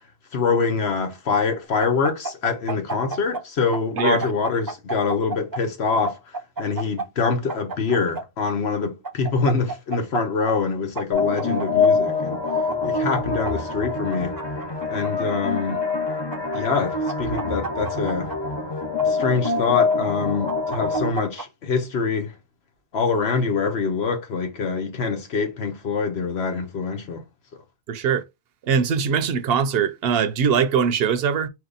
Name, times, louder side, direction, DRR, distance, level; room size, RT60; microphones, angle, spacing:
voice 1, 0.3-6.2 6.6-12.4 12.8-14.4 14.9-15.8 16.5-18.3 19.0-22.3 22.9-27.2, left 5 dB, 85° left, 1.3 m, -25 dB
sound 1, 1.8-3.4 3.7-5.6 6.1-8.2 9.0-10.2 10.5-10.6 11.0-11.9 12.5-13.5 14.1-15.1 15.9-16.8 17.1-18.4 19.0-20.0 20.5-21.5, right 3 dB, 30° right, 0.4 m, -31 dB
sound 2, 11.1-21.1, left 4 dB, 30° left, 0.6 m, -25 dB
voice 2, 27.9-28.2 28.6-31.5, right 7 dB, 70° right, 0.8 m, -21 dB
4.6 x 2.9 x 3.9 m
omnidirectional pair, 1.0 m